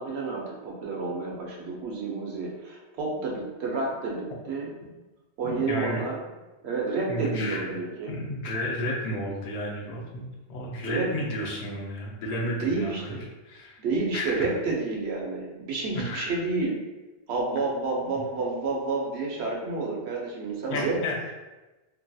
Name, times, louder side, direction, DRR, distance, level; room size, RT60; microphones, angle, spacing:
voice 1, 0.0-4.7 5.4-6.2 6.6-8.1 10.8-11.2 12.5-13.3 13.8-16.8 17.3-21.3, right 3 dB, 80° right, -2 dB, 0.9 m, -30 dB
voice 2, 5.4-6.0 7.1-7.7 8.1-13.1 13.4-13.8 14.1-14.3 15.9-16.3 20.7-21.2, left 1 dB, 85° left, -3 dB, 0.9 m, -32 dB
2.8 x 2.2 x 2.6 m, 1.1 s
omnidirectional pair, 1.1 m